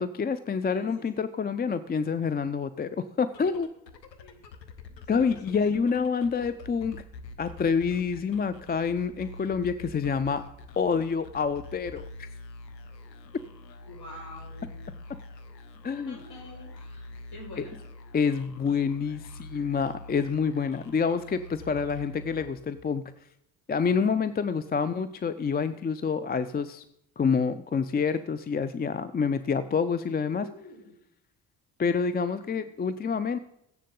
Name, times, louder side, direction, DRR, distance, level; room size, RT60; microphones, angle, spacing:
voice 1, 0.0-3.7 5.1-7.0 7.4-10.4 10.8-12.3 15.8-16.2 18.1-23.0 23.7-26.8 27.2-30.5 31.8-33.4, left 5 dB, 20° left, 13 dB, 0.5 m, -27 dB
voice 2, 0.6-1.0 4.2-4.4 4.9-6.0 6.3-6.6 13.9-14.8 16.1-17.8 30.1-31.0 32.4-32.6, left 1 dB, 50° left, -1 dB, 5.4 m, -48 dB
sound 1, 3.3-23.0, left 2 dB, 90° left, 0.7 m, -46 dB
14.5 x 10.0 x 3.8 m, 0.77 s
figure-of-eight pair, 45°, 49 cm